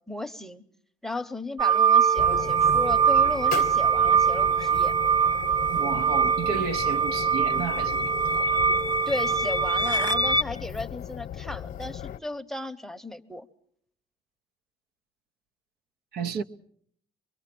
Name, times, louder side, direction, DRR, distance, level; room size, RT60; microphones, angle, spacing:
voice 1, 0.1-0.6 1.0-4.9 9.1-13.5, left 1 dB, ahead, 0.8 m, -35 dB
sound 1, 1.6-10.4, right 6 dB, 25° right, 0.9 m, -23 dB
sound 2, 2.2-12.2, left 10 dB, 55° left, 0.9 m, -37 dB
voice 2, 5.7-8.6 16.1-16.4, right 6 dB, 70° right, 0.9 m, -32 dB
24.5 x 21.5 x 6.0 m
cardioid pair, 110°, 17 cm